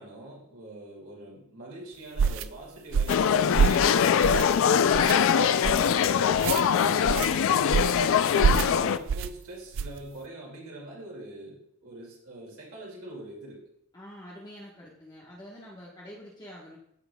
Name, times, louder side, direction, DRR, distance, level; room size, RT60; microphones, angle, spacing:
voice 1, 0.0-3.9 4.2-8.1 8.5-13.6, right 1 dB, 80° right, -3 dB, 2.3 m, -44 dB
sound 1, 2.2-2.5 2.9-3.2 3.5-3.9 4.2-4.6 4.9-5.1 5.6-5.9 6.3-6.6 7.0-7.3 7.7-8.0 8.4-8.7 9.1-9.3 9.7-10.0, right 6 dB, 60° right, 0.3 m, -26 dB
sound 2, 3.1-9.0, left 7 dB, 60° left, 0.3 m, -22 dB
voice 2, 13.9-16.8, equal, 20° left, -5 dB, 1.2 m, -46 dB
14.0 x 4.9 x 2.3 m, 0.73 s
head